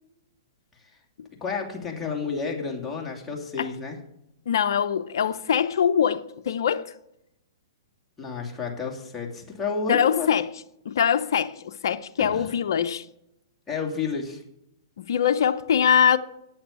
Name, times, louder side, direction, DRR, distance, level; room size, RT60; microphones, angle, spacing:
voice 1, 1.4-4.0 8.2-10.3 12.2-12.5 13.7-14.4, left 5 dB, 10° left, 2.7 m, -31 dB
voice 2, 4.5-6.8 9.9-10.5 10.9-13.0 15.1-16.2, left 8 dB, 70° left, 0.7 m, -23 dB
8.8 x 8.6 x 8.3 m
hypercardioid pair, 125°, 2 cm